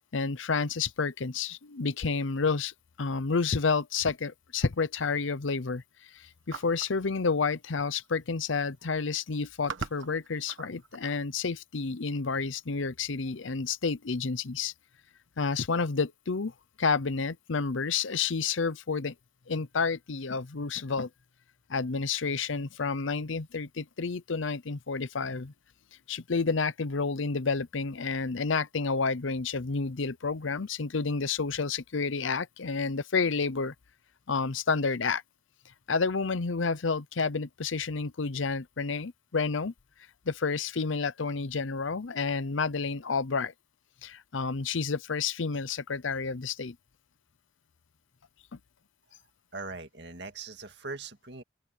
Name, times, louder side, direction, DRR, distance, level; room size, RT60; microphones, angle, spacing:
voice 1, 0.1-14.7 15.4-19.1 19.5-21.1 21.7-25.5 26.1-33.7 34.3-35.2 35.9-39.7 40.3-43.5 44.0-46.8 48.5-48.6, left 4 dB, 85° left, 0.7 m, -30 dB
sound 1, 6.5-6.9 8.0-8.1 8.4-8.7 9.3-11.2, right 4 dB, 85° right, 1.2 m, -40 dB
voice 2, 49.5-51.4, right 3 dB, 60° right, 2.1 m, -40 dB
open air
head